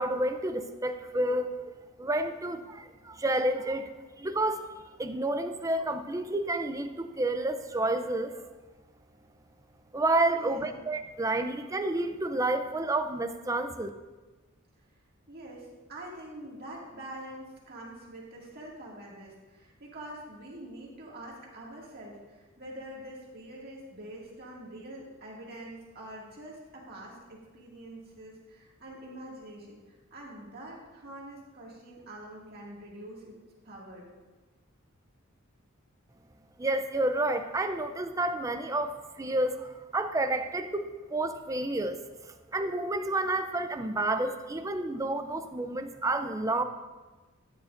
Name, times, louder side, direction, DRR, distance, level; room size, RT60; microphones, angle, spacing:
voice 1, 0.0-1.5 2.0-3.9 4.2-4.7 5.0-8.3 9.9-13.9 36.6-42.0 42.3-46.6, right 2 dB, 15° right, 8 dB, 0.5 m, -30 dB
voice 2, 10.3-10.8 15.3-33.4 33.6-34.1, right 1 dB, 50° right, -4 dB, 2.1 m, -45 dB
13.0 x 9.7 x 2.6 m, 1.2 s
head